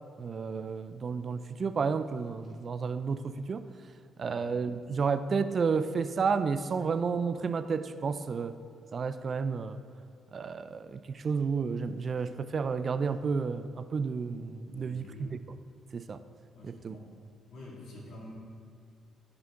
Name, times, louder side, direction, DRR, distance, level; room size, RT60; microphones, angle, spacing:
voice 1, 0.2-3.7 4.2-8.6 8.9-9.8 10.3-15.4 15.9-16.2 16.6-17.0, right 5 dB, 45° right, 12 dB, 0.4 m, -31 dB
voice 2, 14.7-15.4 16.6-17.1 17.5-18.3, left 1 dB, 70° left, -3 dB, 2.2 m, -48 dB
12.0 x 5.9 x 3.7 m, 2.5 s
cardioid pair, 90°, 0 cm